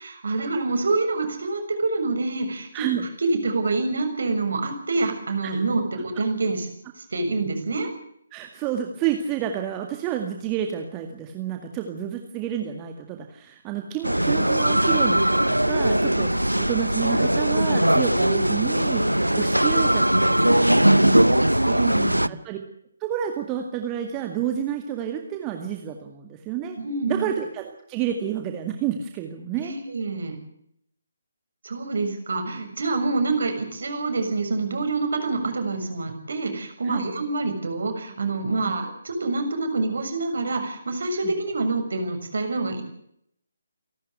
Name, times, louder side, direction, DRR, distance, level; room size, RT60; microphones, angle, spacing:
voice 1, 0.0-2.9 3.3-6.7 7.0-7.9 21.7-22.3 26.8-27.3 29.6-30.4 31.6-42.8, right 3 dB, 55° right, 6 dB, 6.7 m, -26 dB
voice 2, 2.7-3.1 5.4-5.6 8.3-21.8 22.3-22.6 23.0-26.8 27.1-29.7 36.8-37.1 38.6-38.8 41.2-41.3, right 9 dB, 15° right, 4 dB, 2.0 m, -30 dB
sound 1, 14.0-22.3, right 1 dB, 85° right, 0.8 m, -20 dB
29.0 x 12.5 x 8.0 m, 0.70 s
figure-of-eight pair, 145°, 0 cm